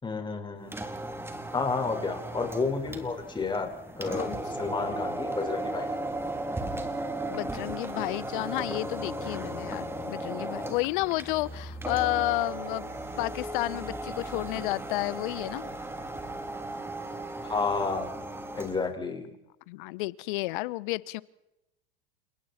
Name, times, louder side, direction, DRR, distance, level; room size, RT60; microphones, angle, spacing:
voice 1, 0.0-0.7 1.5-3.7 4.0-4.3 4.6-6.0 17.4-18.1 18.5-19.3, left 4 dB, 15° left, 4 dB, 5.2 m, -31 dB
sound 1, 0.6-18.9, right 1 dB, 10° right, 3.2 m, -36 dB
voice 2, 7.3-12.9 13.2-15.7 19.7-21.2, left 20 dB, 60° left, 19 dB, 1.2 m, -31 dB
29.5 x 29.0 x 4.4 m, 0.90 s
hypercardioid pair, 100°, 29 cm